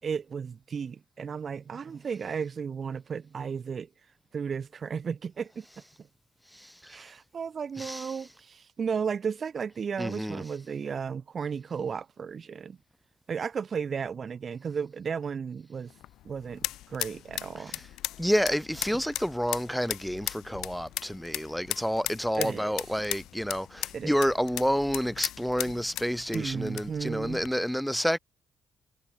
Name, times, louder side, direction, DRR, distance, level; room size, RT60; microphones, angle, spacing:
voice 1, 0.0-3.9 4.3-5.6 6.9-12.8 13.3-15.9 16.2-17.8 22.4-22.8 23.9-24.1 26.3-27.4, right 6 dB, 45° right, 4.6 m, -34 dB
voice 2, 6.5-7.1 7.8-8.1 10.0-10.4 17.6-17.8 18.2-28.2, equal, ahead, 7.2 m, -29 dB
sound 1, 15.9-27.5, left 14 dB, 85° left, 3.1 m, -38 dB
cardioid pair, 90°, 0 cm